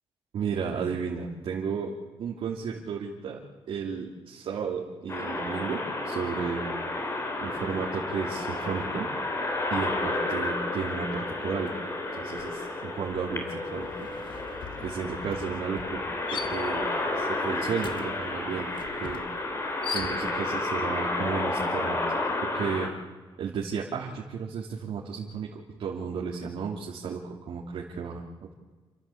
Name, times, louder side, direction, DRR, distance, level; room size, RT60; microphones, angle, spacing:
voice 1, 0.3-3.4 3.7-6.7 7.0-7.1 7.4-9.1 9.7-11.7 12.1-14.4 14.8-18.7 19.0-19.2 19.9-22.0 22.4-22.9 23.4-28.5, right 6 dB, 80° right, -3 dB, 3.0 m, -33 dB
sound 1, 5.1-22.9, left 2 dB, 30° left, 3.6 m, -31 dB
sound 2, 11.6-11.9 12.2-20.6, left 6 dB, 60° left, 2.1 m, -42 dB
29.0 x 14.0 x 8.6 m, 1.3 s
wide cardioid pair, 155°, 9 cm